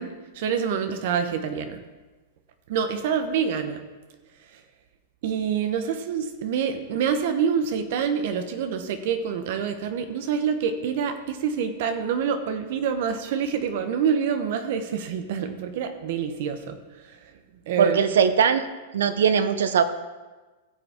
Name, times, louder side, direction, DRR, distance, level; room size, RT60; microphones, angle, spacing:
voice 1, 0.0-1.8 2.7-3.8 5.2-16.8 17.7-18.0, right 7 dB, 60° right, 8 dB, 1.1 m, -26 dB
voice 2, 17.8-18.7 18.9-19.8, right 7 dB, 85° right, 12 dB, 0.8 m, -20 dB
15.5 x 7.0 x 3.8 m, 1.2 s
hypercardioid pair, 130°, 0 cm